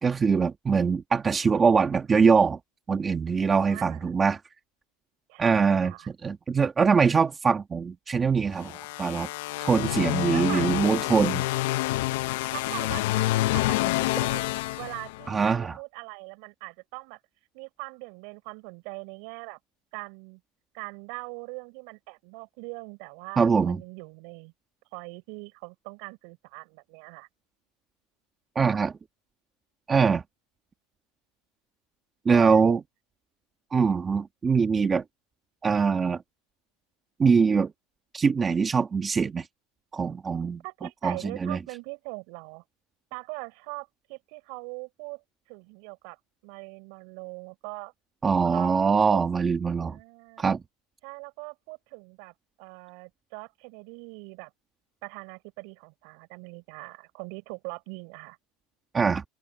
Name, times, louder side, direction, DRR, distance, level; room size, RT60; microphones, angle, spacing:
voice 1, 0.0-2.6 2.9-4.4 5.4-5.9 6.2-9.3 9.6-11.5 15.3-15.8 23.4-23.8 28.5-28.9 29.9-30.2 32.2-32.8 33.7-35.0 35.6-36.2 37.2-37.7 38.1-39.5 39.9-40.6 41.0-41.6 48.2-50.0 50.4-50.6 58.9-59.2, right 5 dB, 15° right, 1.5 m, -23 dB
voice 2, 3.7-4.1 5.3-6.1 10.3-10.9 12.5-13.1 13.5-13.9 14.2-14.5 14.8-17.2 17.5-19.6 19.9-20.4 20.7-24.5 24.9-27.3 32.3-32.8 40.6-42.6 43.1-45.2 45.5-46.2 46.4-47.9 48.4-49.2 49.9-50.5 51.0-54.5 55.0-58.4, right 34 dB, 60° right, 6.8 m, -41 dB
sound 1, 8.6-15.5, left 18 dB, 75° left, 0.6 m, -28 dB
open air
supercardioid pair, 155°, 0 cm